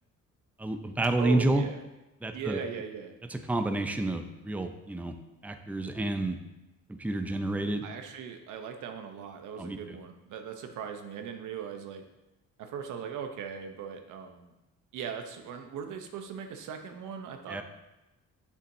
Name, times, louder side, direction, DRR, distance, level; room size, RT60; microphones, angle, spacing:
voice 1, 0.6-1.6 2.2-2.6 3.3-5.1 5.4-6.4 6.9-7.8 9.6-10.0 17.5-17.6, right 2 dB, 5° right, 6 dB, 0.6 m, -29 dB
voice 2, 1.2-1.8 2.3-3.1 7.8-12.0 12.6-14.5 14.9-17.6, right 7 dB, 80° right, 5 dB, 0.9 m, -39 dB
7.3 x 6.9 x 2.7 m, 0.99 s
cardioid pair, 90°, 30 cm